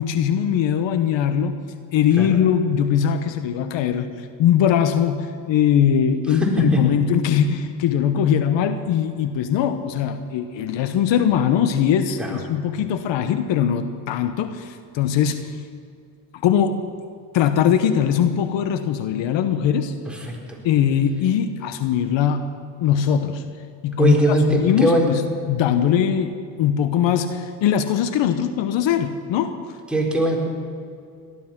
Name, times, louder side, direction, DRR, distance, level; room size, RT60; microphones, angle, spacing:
voice 1, 0.0-1.6 1.9-15.5 16.4-16.8 17.3-19.9 20.6-22.5 22.8-23.4 23.8-29.6, left 8 dB, 70° left, 10 dB, 1.0 m, -21 dB
voice 2, 6.4-6.8 20.3-20.4 24.0-25.1 29.9-30.4, right 1 dB, ahead, -2 dB, 4.4 m, -20 dB
18.5 x 12.5 x 6.0 m, 2.3 s
supercardioid pair, 80°, 46 cm